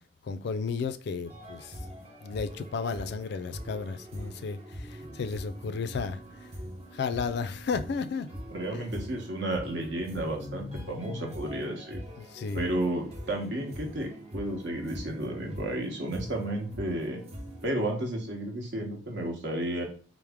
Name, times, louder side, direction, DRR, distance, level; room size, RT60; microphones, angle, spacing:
voice 1, 0.2-1.7 2.2-6.2 6.9-8.3 8.7-8.8 10.4-11.4 12.2-12.7, left 5 dB, 55° left, 0.3 m, -33 dB
sound 1, 1.2-17.6, equal, 30° right, 0.6 m, -43 dB
voice 2, 8.5-12.0 12.5-17.2 17.6-19.8, right 1 dB, 60° right, 1.0 m, -32 dB
4.6 x 2.0 x 3.4 m
head